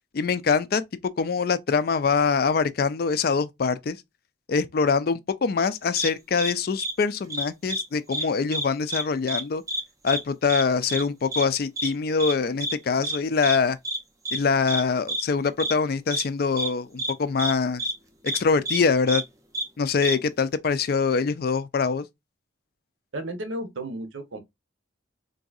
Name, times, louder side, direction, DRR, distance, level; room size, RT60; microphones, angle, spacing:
voice 1, 0.1-0.8 1.2-4.0 4.5-9.6 10.0-13.8 14.3-17.8 18.2-19.2 19.8-22.0, left 5 dB, 50° left, 0.4 m, -24 dB
sound 1, 6.0-6.1 6.4-6.5 6.8-6.9 7.3-7.8 8.1-8.2 8.5-9.0 9.3-9.4 9.7-9.8 10.1-10.2 10.5-10.6 10.9-11.0 11.3-11.4 11.8-11.9 12.2-12.3 12.6-12.7 13.0-13.2 13.4-13.6 13.8-14.0 14.2-14.4 14.7-14.8 15.1-15.2 15.6-15.7 16.1-16.2 16.6-16.7 17.0-17.1 17.4-17.5 17.8-17.9 18.3-18.4 18.7-18.8 19.1-19.2 19.5-19.7 20.0-20.1, right 1 dB, 15° right, 0.5 m, -28 dB
voice 2, 23.1-24.4, right 1 dB, 85° right, 0.9 m, -33 dB
3.9 x 2.6 x 2.3 m
head